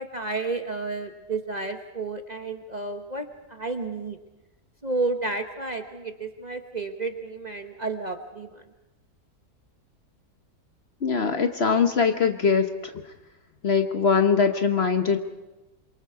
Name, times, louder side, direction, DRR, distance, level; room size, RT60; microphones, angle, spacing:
voice 1, 0.0-4.2 4.8-8.7, right 3 dB, 30° right, 6 dB, 1.0 m, -31 dB
voice 2, 11.0-12.9 13.6-15.2, left 5 dB, 45° left, 7 dB, 1.1 m, -22 dB
26.5 x 23.0 x 4.7 m, 1.0 s
omnidirectional pair, 1.6 m